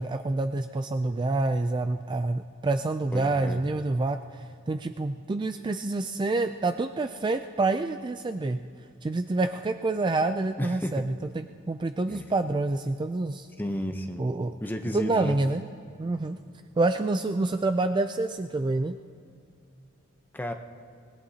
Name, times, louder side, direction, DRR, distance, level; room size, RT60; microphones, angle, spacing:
voice 1, 0.0-8.6 9.0-13.5 14.2-14.5 14.9-15.6 16.0-16.4 16.8-19.0, right 2 dB, 20° right, 8 dB, 0.3 m, -27 dB
voice 2, 3.1-3.6 10.6-11.0 12.1-12.3 13.6-14.3 14.6-15.4 20.3-20.5, left 1 dB, 10° left, 5 dB, 0.8 m, -32 dB
25.0 x 20.0 x 2.8 m, 2.3 s
head